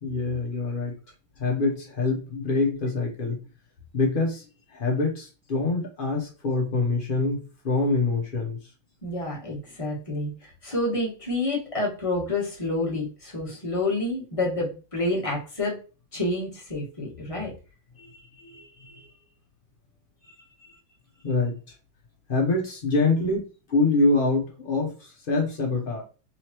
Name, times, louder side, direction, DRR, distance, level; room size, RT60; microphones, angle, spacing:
voice 1, 0.0-1.0 1.4-3.4 3.9-8.6 18.0-19.1 21.2-21.6 22.3-23.4 23.7-26.0, left 3 dB, 80° left, 0 dB, 0.4 m, -25 dB
voice 2, 9.0-15.8 16.1-17.5 20.2-20.3 20.6-20.7 23.2-23.4, left 2 dB, 20° left, -3 dB, 1.1 m, -29 dB
4.0 x 3.2 x 2.9 m, 0.33 s
omnidirectional pair, 2.2 m